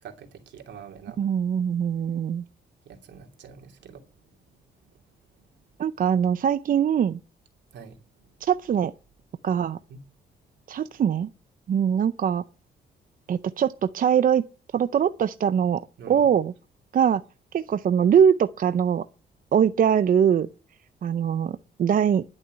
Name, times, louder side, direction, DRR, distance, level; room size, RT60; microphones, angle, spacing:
voice 1, 0.0-1.3 2.8-4.3 7.7-8.3 9.9-10.0 16.0-16.3, right 6 dB, 80° right, 2.9 m, -45 dB
voice 2, 1.2-2.4 5.8-7.2 8.4-8.9 9.4-9.8 10.7-11.3 11.7-12.4 13.3-14.4 14.7-15.8 16.1-16.5 16.9-17.2 17.5-19.0 19.5-20.5 21.0-22.2, right 8 dB, 50° right, 0.6 m, -22 dB
11.5 x 6.5 x 9.5 m
cardioid pair, 110°, 18 cm